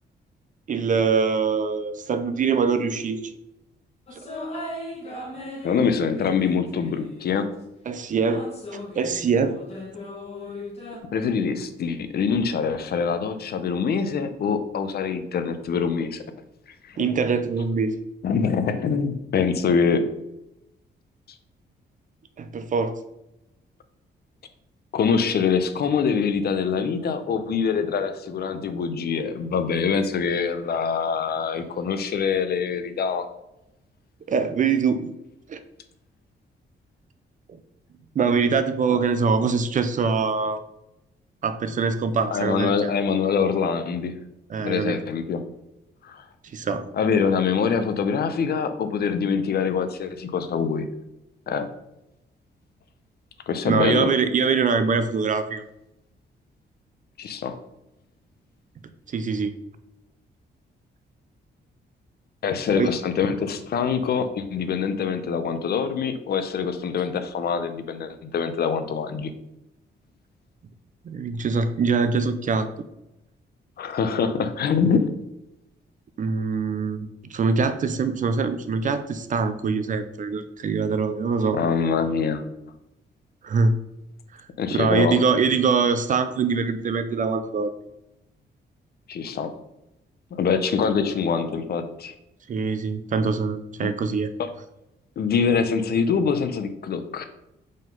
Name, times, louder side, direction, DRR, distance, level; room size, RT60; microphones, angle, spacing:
voice 1, 0.7-3.2 7.9-8.4 9.0-9.6 17.0-18.0 22.4-23.0 34.3-35.1 35.5-35.6 38.2-40.6 41.4-42.7 44.5-45.0 46.5-46.9 53.7-55.6 59.1-59.6 62.7-62.9 71.0-72.7 76.2-81.6 83.4-83.8 84.7-87.7 92.5-94.3, right 5 dB, 45° right, 11 dB, 0.5 m, -23 dB
sound 1, 4.1-7.4 8.3-11.0, left 1 dB, 35° left, 1.6 m, -37 dB
voice 2, 5.6-7.5 11.1-16.2 16.8-17.1 18.2-20.0 24.9-33.3 38.9-39.0 42.3-44.1 44.6-45.4 46.0-46.2 46.9-50.9 51.5-51.7 53.5-54.1 57.2-57.6 62.4-69.3 73.8-75.1 81.5-82.4 84.6-85.2 89.1-89.5 90.4-92.1 93.8-93.9 94.4-94.5 95.2-97.2, left 6 dB, 60° left, 9 dB, 0.7 m, -24 dB
5.2 x 3.9 x 5.3 m, 0.89 s
wide cardioid pair, 140°, 19 cm